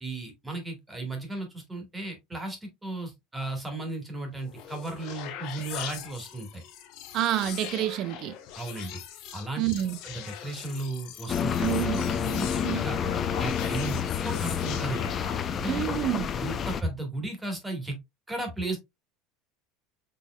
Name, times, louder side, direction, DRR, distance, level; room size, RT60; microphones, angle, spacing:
voice 1, 0.0-6.6 8.6-9.0 9.3-9.7 10.0-13.0 13.4-15.9 16.4-18.0 18.3-18.8, right 2 dB, 10° right, 1.6 m, -35 dB
sound 1, 4.3-15.8, left 10 dB, 60° left, 0.7 m, -41 dB
voice 2, 7.1-8.4 9.6-10.0 11.6-12.1 12.6-13.1 15.7-16.3, right 13 dB, 50° right, 0.4 m, -28 dB
sound 2, 11.3-16.8, left 8 dB, 30° left, 0.4 m, -29 dB
4.4 x 3.4 x 2.3 m
supercardioid pair, 130°, 0 cm